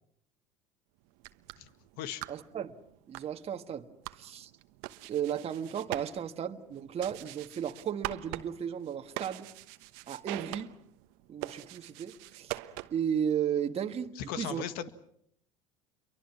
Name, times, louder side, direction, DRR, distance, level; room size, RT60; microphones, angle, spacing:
sound 1, 1.1-13.2, right 18 dB, 70° right, 1.1 m, -44 dB
voice 1, 2.3-2.7 3.1-3.9 4.2-4.5 5.1-9.5 10.1-10.7 11.3-12.6 12.9-14.6, right 8 dB, 40° right, 1.6 m, -34 dB
voice 2, 14.1-14.9, left 10 dB, 65° left, 1.8 m, -37 dB
29.0 x 24.0 x 6.0 m
hypercardioid pair, 85°, 17 cm